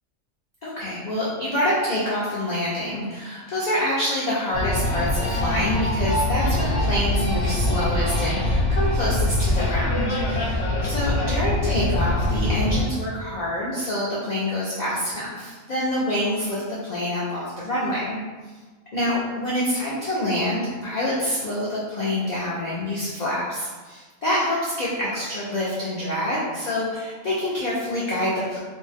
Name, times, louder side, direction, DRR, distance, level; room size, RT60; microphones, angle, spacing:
voice 1, 0.6-18.2 18.9-28.6, left 1 dB, 65° left, -7 dB, 0.4 m, -26 dB
sound 1, 4.5-12.9, left 1 dB, 35° left, 0.8 m, -23 dB
2.5 x 2.1 x 3.3 m, 1.4 s
omnidirectional pair, 1.3 m